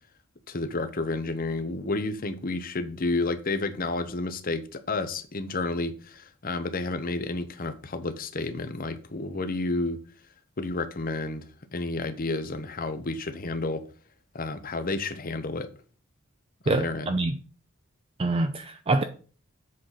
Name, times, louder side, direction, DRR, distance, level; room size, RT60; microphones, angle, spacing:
voice 1, 0.5-10.0 10.6-13.9 14.3-15.7 16.6-17.1, left 2 dB, 45° left, 0.9 m, -31 dB
voice 2, 16.7-17.4 18.2-19.0, right 2 dB, 30° right, 0.5 m, -25 dB
7.6 x 4.0 x 5.8 m
head